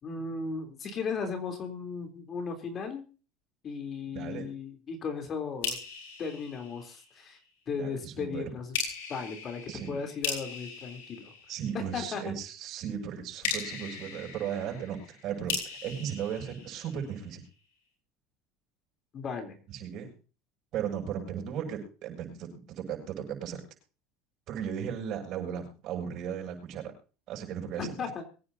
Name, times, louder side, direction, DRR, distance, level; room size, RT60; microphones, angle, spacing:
voice 1, 0.0-3.0 3.6-5.8 6.2-7.4 7.7-8.7 9.1-9.6 9.9-11.3 11.7-12.3 19.1-19.6 27.8-28.2, left 5 dB, 35° left, 5 dB, 3.5 m, -36 dB
voice 2, 4.1-4.5 7.8-8.4 9.7-10.0 11.5-15.5 15.8-17.4 19.7-20.1 20.7-23.6 24.5-26.9 27.3-27.9, right 8 dB, 55° right, 2 dB, 7.4 m, -36 dB
sound 1, 5.6-7.4 8.7-12.1 13.4-17.3, left 5 dB, 85° left, 5.5 m, -38 dB
23.5 x 10.0 x 2.8 m, 0.35 s
supercardioid pair, 115°, 0 cm